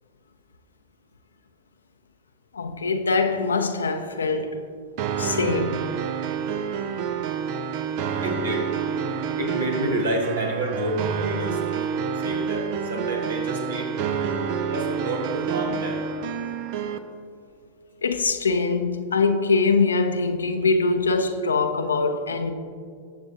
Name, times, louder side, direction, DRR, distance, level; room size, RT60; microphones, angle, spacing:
voice 1, 2.5-4.6 5.2-5.9 18.0-22.5, left 4 dB, 75° left, 0.7 m, -23 dB
sound 1, 5.0-17.0, right 7 dB, 45° right, 0.7 m, -28 dB
voice 2, 8.2-8.7 9.4-13.9 14.7-16.0, right 1 dB, 70° right, 1.9 m, -29 dB
19.5 x 7.6 x 2.8 m
figure-of-eight pair, 90°, 0 cm